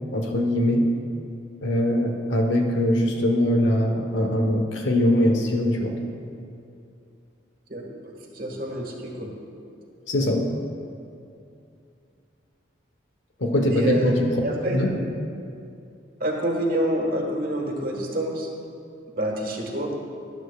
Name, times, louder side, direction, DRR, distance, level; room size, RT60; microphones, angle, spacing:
voice 1, 0.1-0.9 1.6-5.9 10.1-10.4 13.4-14.3 14.7-14.9, left 1 dB, 85° left, 3 dB, 1.1 m, -22 dB
voice 2, 7.7-9.5 13.7-14.1 14.4-14.8 16.2-18.5 19.2-19.9, right 1 dB, 50° right, 0 dB, 1.4 m, -27 dB
13.5 x 10.5 x 2.4 m, 2.5 s
head